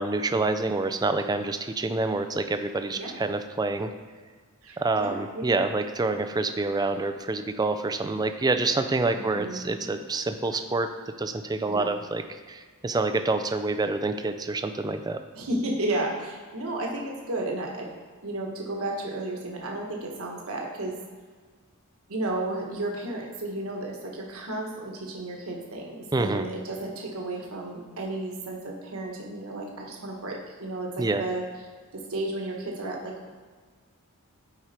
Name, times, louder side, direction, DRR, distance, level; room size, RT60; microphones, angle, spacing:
voice 1, 0.0-3.9 4.8-10.9 11.2-12.2 12.5-15.2 26.1-26.4 31.0-31.2, right 3 dB, 20° right, 8 dB, 0.4 m, -27 dB
voice 2, 4.6-5.6 9.1-9.9 11.7-11.9 15.3-17.9 18.2-21.0 22.1-31.4 31.9-33.3, right 2 dB, 70° right, 0 dB, 1.4 m, -33 dB
8.5 x 4.8 x 4.4 m, 1.5 s
head